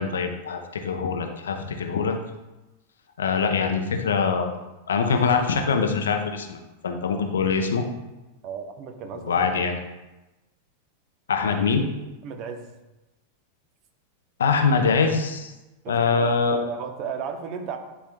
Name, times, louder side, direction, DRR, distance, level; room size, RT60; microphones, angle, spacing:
voice 1, 0.0-2.2 3.2-4.5 4.9-7.8 9.2-9.8 11.3-11.8 14.4-15.5 15.9-16.6, left 5 dB, 65° left, 5 dB, 0.7 m, -23 dB
voice 2, 8.4-9.6 12.2-12.7 15.8-17.8, right 6 dB, 40° right, 6 dB, 0.7 m, -34 dB
10.0 x 4.4 x 2.2 m, 1.0 s
figure-of-eight pair, 90°, 0 cm